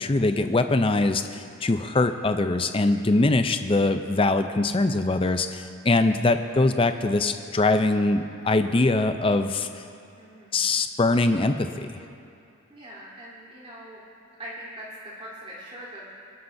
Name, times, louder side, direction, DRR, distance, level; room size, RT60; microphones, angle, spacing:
voice 1, 0.0-9.7 10.5-12.0, left 2 dB, 25° left, 8 dB, 0.5 m, -22 dB
voice 2, 10.2-10.7 12.7-14.0 14.4-16.2, equal, 25° right, -7 dB, 3.5 m, -42 dB
24.5 x 11.5 x 2.7 m, 2.6 s
head